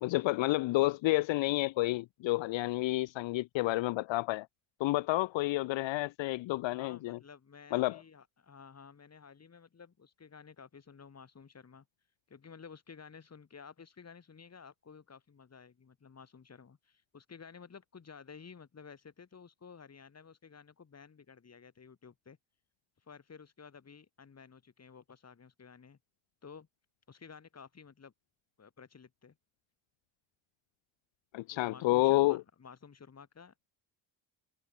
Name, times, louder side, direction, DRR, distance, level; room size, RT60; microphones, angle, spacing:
voice 1, 0.0-4.5 4.8-7.2 7.7-8.0 31.3-32.4, left 19 dB, 70° left, 0.6 m, -30 dB
voice 2, 6.7-11.9 12.3-22.4 23.0-26.0 26.4-26.7 27.1-28.1 28.6-29.4 31.5-33.7, left 6 dB, 30° left, 4.1 m, -53 dB
cardioid pair, 115°, 47 cm